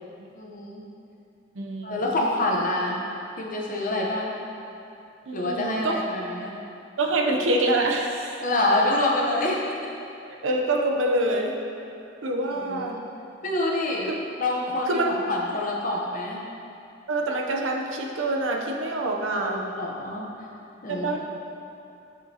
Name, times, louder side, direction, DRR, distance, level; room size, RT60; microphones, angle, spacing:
voice 1, 0.4-0.8 1.8-3.0 3.4-4.3 5.3-6.6 8.4-9.9 12.7-13.0 13.4-14.1 14.4-16.4 19.3-20.3 20.8-21.1, left 2 dB, 45° left, -2 dB, 0.8 m, -26 dB
voice 2, 1.5-2.0 5.3-6.0 7.0-8.4 10.4-11.6 12.2-13.0 14.1-14.2 14.9-15.2 17.1-19.6 20.9-21.2, right 2 dB, 85° right, 2 dB, 0.6 m, -26 dB
6.5 x 6.4 x 2.8 m, 2.7 s
head